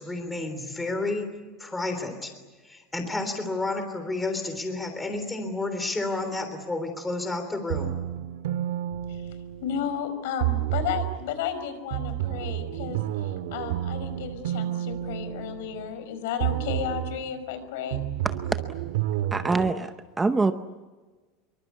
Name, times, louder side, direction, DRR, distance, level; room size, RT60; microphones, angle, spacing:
voice 1, 0.0-1.3 1.6-2.3 2.6-8.0, left 2 dB, 5° left, 7 dB, 3.4 m, -31 dB
sound 1, 7.7-9.9 10.4-11.2 11.9-16.0 16.4-17.2 17.9-19.7, right 13 dB, 85° right, 1.7 m, -30 dB
voice 2, 9.6-18.0, left 8 dB, 70° left, 10 dB, 5.1 m, -33 dB
voice 3, 19.3-19.9 20.2-20.5, right 3 dB, 10° right, 9 dB, 0.7 m, -23 dB
26.0 x 24.0 x 8.3 m, 1.3 s
supercardioid pair, 175°, 0 cm